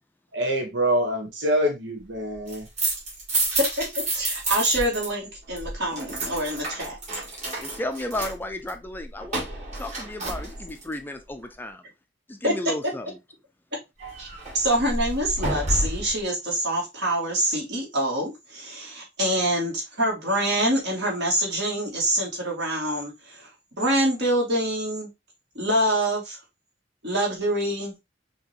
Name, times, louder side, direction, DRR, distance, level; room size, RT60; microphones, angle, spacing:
voice 1, 0.3-2.6, equal, 85° right, 1.1 m, -25 dB
sound 1, 2.3-5.1 5.3-10.9 14.0-16.2, right 2 dB, 40° right, 2.1 m, -30 dB
voice 2, 3.8-7.0 12.4-12.6 14.2-14.3 14.5-23.5 23.8-25.1 25.5-26.4 27.0-27.9, right 1 dB, 65° right, 2.4 m, -25 dB
voice 3, 7.6-9.4 9.8-11.8 12.3-13.1, left 1 dB, 10° left, 0.4 m, -33 dB
5.7 x 2.9 x 2.8 m
head